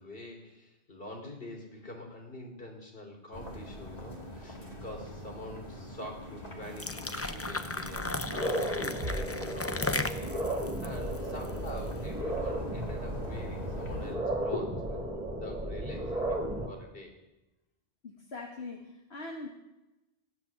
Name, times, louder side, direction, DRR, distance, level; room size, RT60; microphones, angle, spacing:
voice 1, 0.0-10.4 10.8-15.0 15.4-16.4 16.7-17.2, left 1 dB, 60° left, 2 dB, 3.3 m, -45 dB
sound 1, 3.3-14.2, left 1 dB, 40° left, 2.8 m, -44 dB
sound 2, 6.6-11.9, left 2 dB, 15° left, 0.6 m, -36 dB
sound 3, 7.2-7.3 7.9-16.7, right 1 dB, 35° right, 2.4 m, -34 dB
voice 2, 18.0-19.5, left 3 dB, 80° left, 0 dB, 2.0 m, -42 dB
15.5 x 11.0 x 7.1 m, 0.98 s
omnidirectional pair, 1.1 m